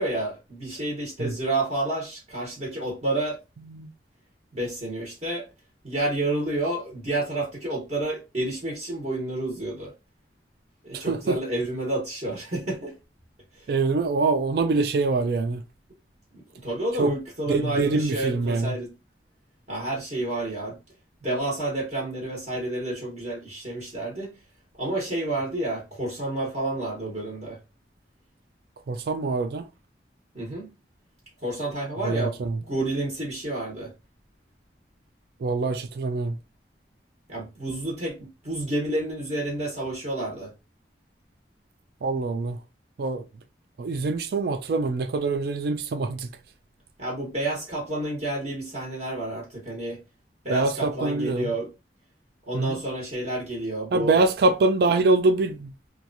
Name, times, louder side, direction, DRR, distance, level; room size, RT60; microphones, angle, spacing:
voice 1, 0.0-3.4 4.5-5.5 5.8-9.9 10.8-12.9 13.5-13.7 16.3-18.9 19.7-20.8 21.2-24.3 24.8-27.6 30.3-30.7 31.4-32.3 32.7-33.9 37.3-40.5 47.0-50.0 50.4-51.7 52.5-54.2, right 2 dB, 40° right, 1.0 m, -30 dB
voice 2, 10.9-11.4 13.7-15.6 17.0-17.1 17.5-18.7 28.9-29.7 32.0-32.6 35.4-36.4 42.0-42.6 43.0-43.2 43.8-46.3 50.5-51.5 52.5-52.8 53.9-55.7, right 3 dB, 60° right, 0.3 m, -24 dB
2.9 x 2.3 x 2.5 m
head